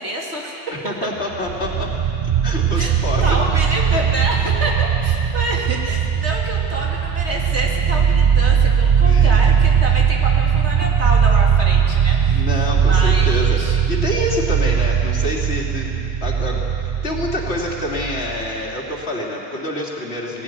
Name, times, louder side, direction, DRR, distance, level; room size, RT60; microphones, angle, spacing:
voice 1, 0.0-0.5 2.8-3.0 3.2-12.4 12.8-13.8, right 1 dB, 85° right, -2 dB, 3.2 m, -27 dB
voice 2, 0.7-1.9 2.4-3.3 9.0-9.4 12.3-20.4, left 1 dB, 75° left, -2 dB, 3.1 m, -27 dB
sound 1, 1.3-18.7, right 7 dB, 45° right, 0.7 m, -19 dB
19.5 x 16.5 x 9.5 m, 2.8 s
omnidirectional pair, 1.1 m